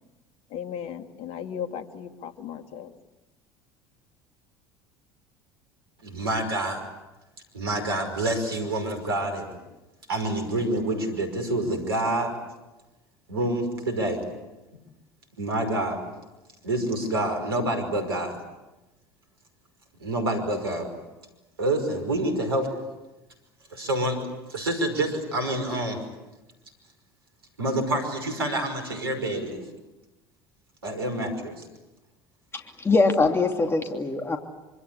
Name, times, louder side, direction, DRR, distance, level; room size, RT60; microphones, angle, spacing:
voice 1, 0.5-2.9, left 8 dB, 55° left, 8 dB, 2.5 m, -36 dB
voice 2, 6.0-6.8 7.5-9.6 10.1-12.3 13.3-14.2 15.4-16.0 16.6-18.4 20.0-20.9 21.6-22.7 23.7-24.2 24.5-26.0 27.6-29.7 30.8-31.6, right 1 dB, 80° right, 6 dB, 5.5 m, -27 dB
voice 3, 32.5-34.4, left 3 dB, 20° left, 4 dB, 2.9 m, -23 dB
26.5 x 26.0 x 8.5 m, 1.0 s
figure-of-eight pair, 65°, 13 cm